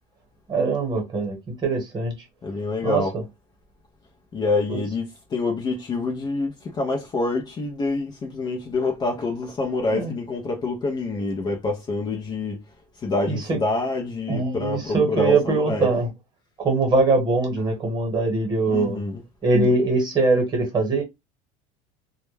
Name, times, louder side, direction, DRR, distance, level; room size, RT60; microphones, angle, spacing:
voice 1, 0.5-2.1 2.8-3.0 4.7-4.8 9.9-10.1 13.2-13.6 14.3-16.1 16.6-19.0 19.4-21.0, right 3 dB, 25° right, 1.1 m, -22 dB
voice 2, 2.4-3.2 4.3-12.6 13.0-15.9 18.7-19.2, left 3 dB, 25° left, 0.5 m, -27 dB
2.2 x 2.1 x 3.2 m
supercardioid pair, 130°, 17 cm